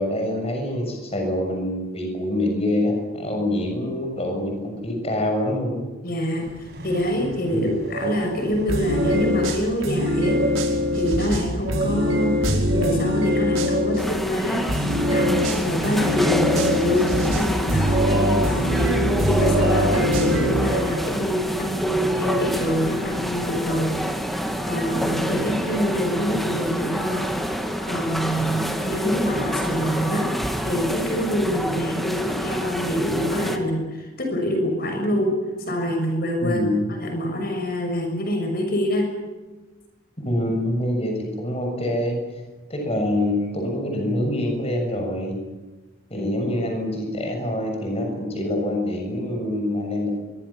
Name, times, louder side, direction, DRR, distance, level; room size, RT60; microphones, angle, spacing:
voice 1, 0.0-5.9 7.5-7.7 28.5-28.6 36.4-36.9 40.2-42.2 42.7-45.4 46.1-50.1, left 1 dB, 30° left, 3 dB, 6.8 m, -25 dB
voice 2, 6.0-10.4 10.9-14.7 15.1-24.0 24.7-27.3 27.8-30.3 30.6-35.3 35.6-36.6 36.9-39.1 46.1-46.3, equal, 45° left, 3 dB, 6.4 m, -25 dB
sound 1, 6.4-23.8, right 3 dB, 55° right, 5.8 m, -34 dB
sound 2, 8.7-14.0 14.7-20.7, left 1 dB, 85° right, 5.3 m, -23 dB
sound 3, 14.0-33.6, equal, ahead, 2.3 m, -27 dB
24.0 x 23.5 x 7.3 m, 1.2 s
head